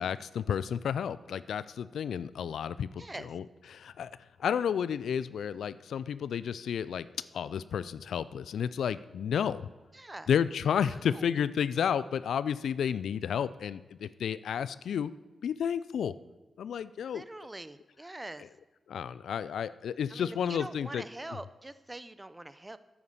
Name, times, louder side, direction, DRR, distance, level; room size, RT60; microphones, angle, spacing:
voice 1, 0.0-2.9 3.3-3.4 3.7-4.1 4.4-7.1 7.3-9.7 10.3-15.1 15.4-16.1 16.6-17.2 18.9-21.0, left 8 dB, 85° left, 16 dB, 0.4 m, -31 dB
voice 2, 3.0-3.4 9.9-10.3 10.9-11.3 17.1-18.5 20.1-22.8, right 2 dB, 20° right, 14 dB, 0.8 m, -44 dB
9.2 x 8.6 x 6.8 m, 1.2 s
cardioid pair, 50°, 0 cm